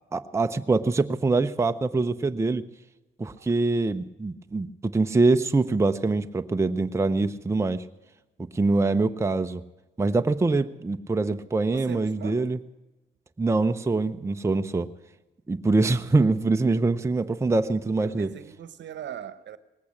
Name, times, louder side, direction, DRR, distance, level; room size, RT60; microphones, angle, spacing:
voice 1, 0.1-2.6 3.2-7.8 8.5-9.6 10.0-12.6 13.4-14.9 15.5-18.3, right 3 dB, 15° right, 0.6 m, -24 dB
voice 2, 11.7-12.5 15.8-16.2 18.0-19.6, right 9 dB, 65° right, 1.0 m, -40 dB
19.0 x 8.5 x 8.5 m
cardioid pair, 90°, 20 cm